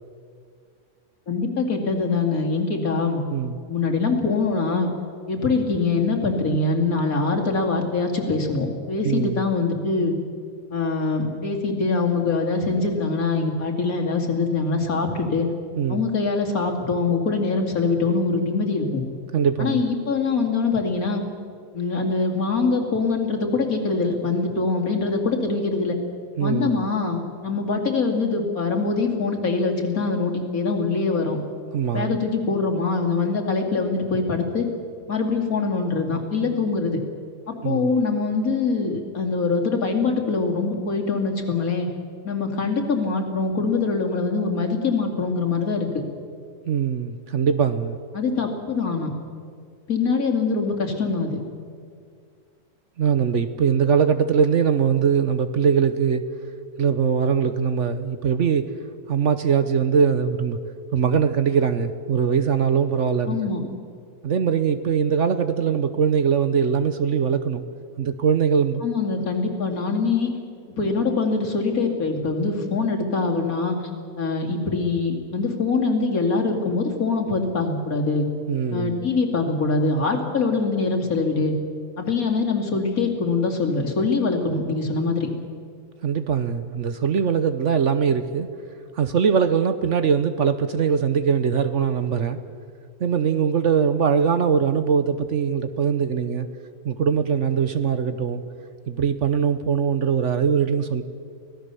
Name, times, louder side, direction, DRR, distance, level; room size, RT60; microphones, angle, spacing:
voice 1, 1.3-3.2 3.7-4.9 5.3-10.2 10.7-15.5 15.9-19.0 19.6-21.2 21.7-26.0 26.4-31.4 31.9-34.7 35.1-37.0 37.5-41.9 42.2-45.9 48.1-49.1 49.9-51.4 63.3-63.7 68.8-70.3 70.8-73.8 74.2-78.3 78.7-81.5 82.0-85.3, left 4 dB, 60° left, 1 dB, 3.0 m, -23 dB
voice 2, 9.0-9.4 15.8-16.0 19.3-19.8 26.4-26.8 31.7-32.2 37.6-37.9 46.7-48.0 53.0-56.2 56.8-58.7 59.1-60.6 60.9-63.5 64.2-67.6 68.0-68.8 78.5-79.1 86.0-88.5 89.0-92.4 93.0-96.5 96.8-98.4 98.9-101.0, right 7 dB, 55° right, 10 dB, 1.0 m, -21 dB
25.0 x 17.5 x 6.9 m, 2.2 s
omnidirectional pair, 1.7 m